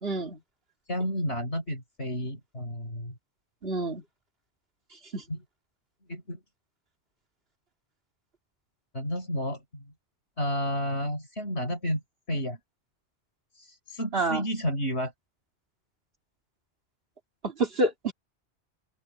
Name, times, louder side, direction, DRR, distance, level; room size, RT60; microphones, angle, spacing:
voice 1, 0.0-0.4 3.6-4.0 5.1-5.2 14.1-14.4 17.4-18.1, right 2 dB, 60° right, 2.6 m, -28 dB
voice 2, 0.9-3.1 5.3-5.4 6.1-6.4 8.9-9.8 10.4-12.0 12.3-12.6 13.5-15.1, equal, 70° left, 6.8 m, -31 dB
omnidirectional pair, 1.1 m